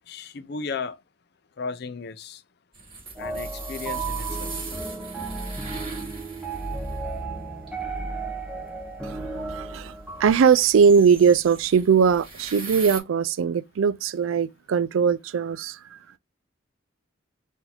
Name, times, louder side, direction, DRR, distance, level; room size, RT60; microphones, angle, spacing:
voice 1, 0.1-1.0 1.6-2.4 3.2-4.5, left 5 dB, 55° left, 0.5 m, -35 dB
sound 1, 2.7-13.0, right 3 dB, 25° right, 2.0 m, -41 dB
sound 2, 3.2-10.4, right 3 dB, 5° right, 0.7 m, -33 dB
voice 2, 9.0-9.9 10.2-16.0, right 6 dB, 80° right, 0.4 m, -20 dB
4.0 x 2.7 x 4.2 m
head